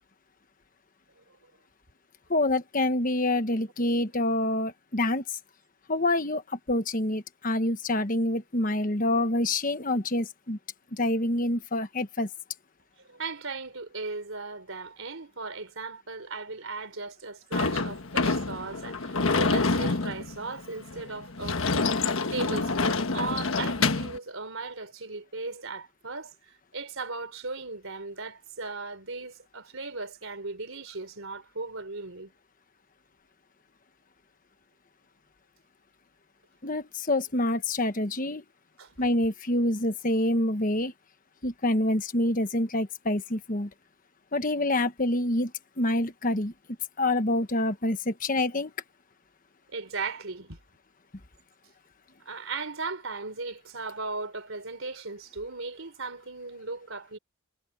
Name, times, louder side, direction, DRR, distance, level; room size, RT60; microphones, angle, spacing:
voice 1, 2.3-5.4 5.9-10.6 10.9-12.3 36.6-38.4 39.0-40.9 41.4-43.7 44.3-45.5 45.8-46.5 47.0-48.7, left 1 dB, 40° left, 1.3 m, -27 dB
voice 2, 13.1-22.0 22.3-32.3 38.8-39.0 49.7-50.6 52.3-57.2, right 3 dB, 70° right, 3.7 m, -37 dB
Sliding door / Slam, 17.5-24.2, left 3 dB, 70° left, 1.4 m, -27 dB
head